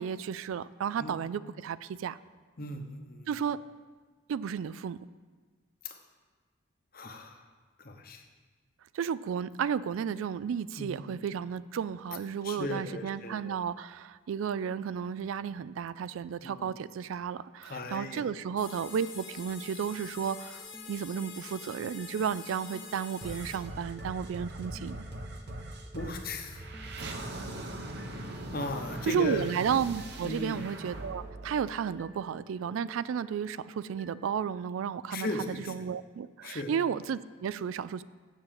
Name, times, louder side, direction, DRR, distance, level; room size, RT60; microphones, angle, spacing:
voice 1, 0.0-2.2 3.3-3.6 4.3-5.0 8.9-25.0 29.1-38.0, right 7 dB, 80° right, 17 dB, 0.3 m, -33 dB
voice 2, 2.6-3.3 5.8-6.0 6.9-7.4 7.8-8.2 10.8-11.2 12.4-13.6 16.4-16.7 17.6-18.3 25.9-26.6 28.5-29.5 30.2-30.6 35.1-35.7 36.4-36.7, left 2 dB, 45° left, 5 dB, 0.9 m, -37 dB
sound 1, 18.6-23.6, left 6 dB, 70° left, 1.8 m, -46 dB
sound 2, 18.9-34.3, right 1 dB, 5° left, 0.5 m, -56 dB
sound 3, 23.2-32.5, right 1 dB, 55° right, 0.9 m, -41 dB
7.6 x 7.2 x 7.6 m, 1.4 s
head